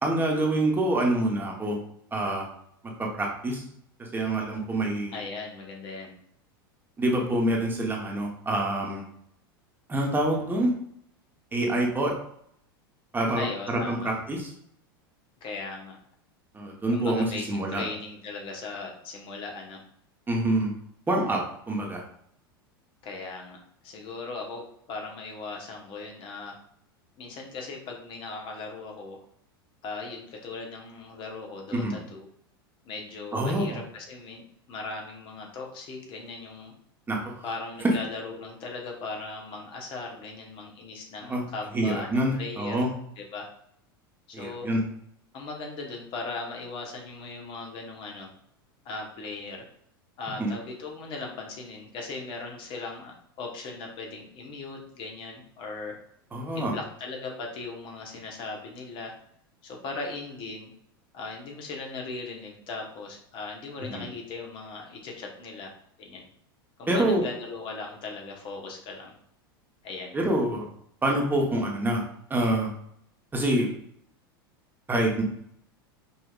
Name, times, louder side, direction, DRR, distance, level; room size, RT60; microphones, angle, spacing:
voice 1, 0.0-1.8 2.1-2.5 3.0-3.6 4.0-5.2 7.0-9.0 9.9-10.7 11.5-12.1 13.1-14.5 16.5-17.8 20.3-20.7 21.1-22.0 31.7-32.0 33.3-33.8 37.1-37.2 37.8-37.9 41.3-41.4 41.7-42.9 44.3-44.8 50.4-50.5 56.3-56.7 63.8-64.1 66.9-67.2 70.1-70.7 71.0-72.0 72.3-72.7 73.3-73.7 74.9-75.2, right 1 dB, 15° right, -1 dB, 1.1 m, -26 dB
voice 2, 5.1-6.1 13.4-14.1 15.4-16.0 16.9-19.8 23.0-26.6 27.2-29.2 29.8-32.3 32.8-36.7 37.4-42.9 43.2-43.5 44.3-44.7 45.3-48.3 48.8-49.7 50.2-56.0 56.5-59.2 59.6-60.7 61.1-66.2 66.8-69.1 69.8-70.2, left 3 dB, 45° left, 1 dB, 1.1 m, -38 dB
5.4 x 2.8 x 2.4 m, 0.69 s
hypercardioid pair, 90°, 12 cm